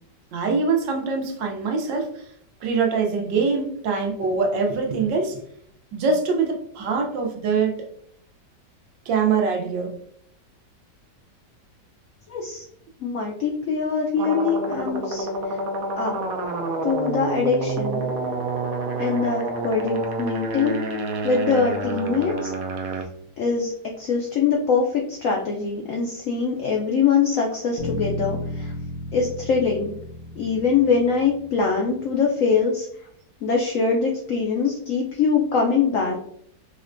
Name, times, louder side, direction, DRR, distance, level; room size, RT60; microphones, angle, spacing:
voice 1, 0.3-2.3 2.6-5.4 5.9-7.8 9.1-10.0, right 5 dB, 85° right, 2 dB, 1.4 m, -23 dB
voice 2, 12.3-12.6 13.0-15.6 16.0-16.1 16.8-18.0 19.0-20.8 21.2-22.5 23.4-28.7 29.1-29.9 30.4-32.9 33.4-36.2, left 5 dB, 80° left, 0 dB, 0.7 m, -23 dB
sound 1, 14.2-23.0, right 2 dB, 70° right, 0.9 m, -28 dB
Bass guitar, 27.8-32.2, left 1 dB, 65° left, 1.0 m, -34 dB
4.9 x 2.2 x 2.5 m, 0.69 s
omnidirectional pair, 1.9 m